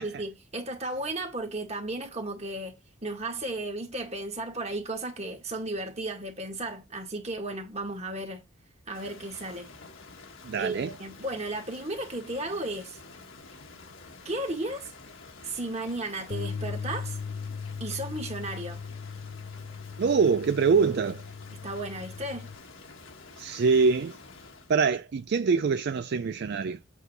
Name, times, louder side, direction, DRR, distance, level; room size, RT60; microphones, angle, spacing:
voice 1, 0.0-8.4 8.9-9.7 10.6-13.0 14.2-14.9 15.4-17.2 17.8-18.8 21.6-22.5, right 2 dB, 30° right, 2.1 m, -34 dB
Rain, 8.9-24.8, left 3 dB, 65° left, 1.5 m, -49 dB
voice 2, 10.4-10.9 20.0-21.2 23.4-24.2 24.7-26.8, right 5 dB, 50° right, 0.4 m, -24 dB
Bass guitar, 16.3-22.6, left 5 dB, 45° left, 0.3 m, -38 dB
8.4 x 3.6 x 5.3 m
head